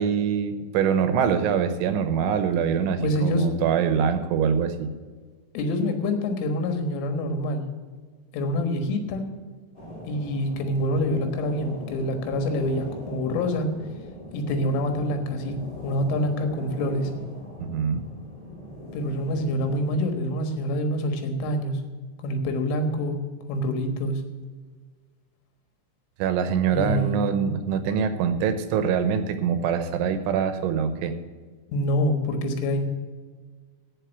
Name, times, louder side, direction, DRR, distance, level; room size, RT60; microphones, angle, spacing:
voice 1, 0.0-4.9 17.6-18.0 26.2-31.1, right 7 dB, 80° right, 10 dB, 3.2 m, -24 dB
voice 2, 3.0-3.5 5.6-7.6 8.3-9.3 10.1-13.7 14.3-17.1 18.9-21.8 22.2-23.2 23.5-24.2 26.7-27.2 31.7-32.9, left 1 dB, 85° left, 6 dB, 4.0 m, -26 dB
sound 1, 9.7-20.0, equal, 20° left, 3.2 m, -40 dB
15.5 x 5.3 x 8.0 m, 1.5 s
omnidirectional pair, 5.6 m